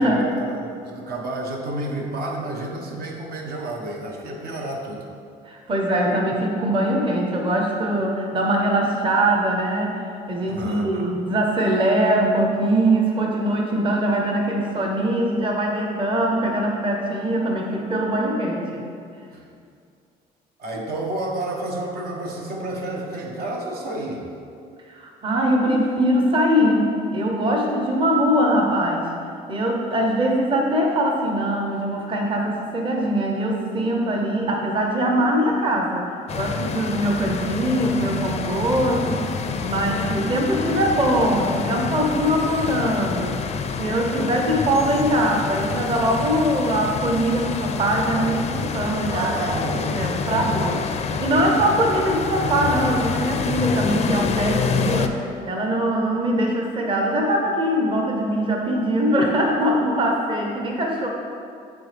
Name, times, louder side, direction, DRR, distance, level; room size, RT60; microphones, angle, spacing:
voice 1, 0.0-5.1 10.5-11.1 19.3-19.5 20.6-24.2 49.0-50.8 51.5-51.6, right 1 dB, 65° right, 0 dB, 0.9 m, -30 dB
voice 2, 5.5-10.0 10.3-18.8 24.9-29.1 29.5-36.0 36.3-43.5 43.8-49.3 49.9-50.8 51.2-61.1, right 1 dB, 30° right, 1 dB, 0.8 m, -22 dB
sound 1, 36.3-55.1, left 6 dB, 40° left, 0.4 m, -27 dB
9.4 x 3.9 x 3.4 m, 2.4 s
cardioid pair, 110°, 17 cm